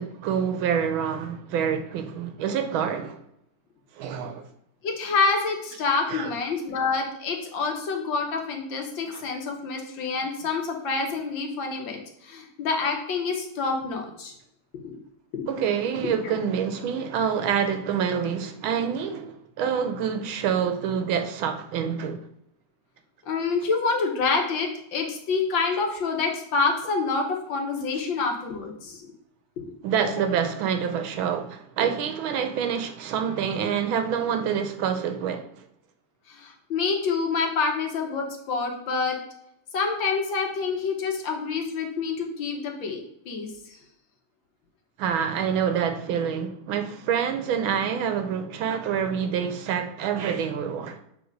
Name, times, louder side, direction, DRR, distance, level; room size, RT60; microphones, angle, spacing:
voice 1, 0.0-3.2 4.0-4.5 6.1-6.3 9.1-9.2 15.5-22.3 29.8-35.5 45.0-51.0, right 7 dB, 75° right, 1.4 m, -27 dB
voice 2, 4.8-14.3 14.8-15.0 15.3-15.5 16.0-16.1 23.2-29.0 36.3-39.2 39.7-43.0 43.2-43.8, left 4 dB, 65° left, 1.7 m, -27 dB
7.1 x 3.3 x 5.1 m
omnidirectional pair, 2.4 m